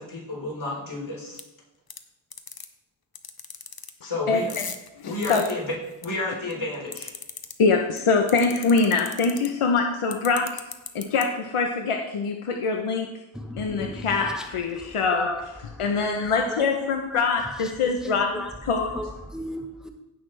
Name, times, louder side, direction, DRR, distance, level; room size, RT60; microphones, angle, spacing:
voice 1, 0.0-1.4 4.0-4.5 5.0-7.1, left 2 dB, 65° left, -4 dB, 4.0 m, -31 dB
sound 1, 1.4-1.5 1.9-2.0 2.3-2.7 3.2-3.9 4.3-6.1 6.5-7.5 8.0-8.1 8.3-9.5 10.1-11.2, left 6 dB, 45° left, 0.9 m, -36 dB
voice 2, 4.0-4.4 5.0-5.4 7.6-10.6 10.9-13.1 13.6-15.3 15.8-18.9, left 4 dB, 90° left, 3 dB, 0.9 m, -24 dB
voice 3, 13.3-14.4 14.7-15.4 16.0-17.5 18.0-18.5 18.9-19.9, left 1 dB, ahead, 4 dB, 1.0 m, -35 dB
16.0 x 6.1 x 3.3 m, 1.0 s
wide cardioid pair, 60°, 49 cm